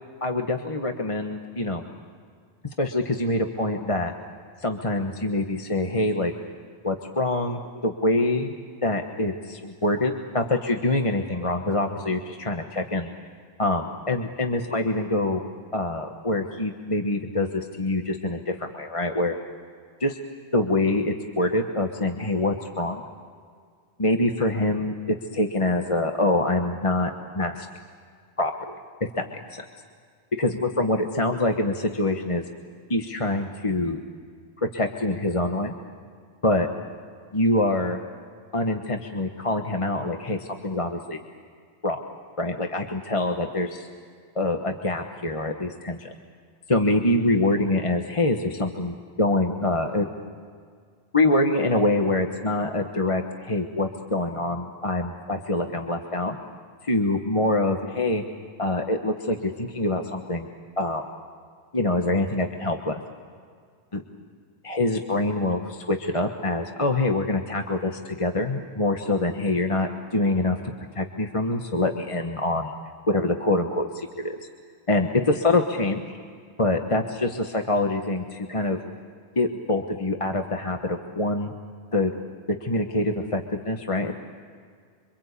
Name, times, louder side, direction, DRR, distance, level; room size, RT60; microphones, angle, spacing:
voice 1, 0.2-1.8 2.8-4.1 4.6-6.3 6.8-8.5 8.8-13.1 13.6-15.4 15.7-19.4 20.0-20.2 20.5-23.0 24.0-27.7 28.4-28.5 29.0-29.6 30.3-32.4 32.9-34.0 34.6-35.7 36.4-36.7 37.3-38.0 38.5-41.2 41.8-42.0 42.4-43.9 44.3-46.1 46.7-50.1 51.1-56.4 56.8-58.2 58.6-60.5 60.8-61.1 61.7-63.0 63.9-64.0 64.6-70.6 70.9-72.7 73.1-74.3 74.9-76.1 76.6-78.8 79.3-81.5 81.9-82.1 82.5-84.1, left 2 dB, 30° left, 3 dB, 1.3 m, -25 dB
27.0 x 25.5 x 8.3 m, 2.1 s
omnidirectional pair, 1.2 m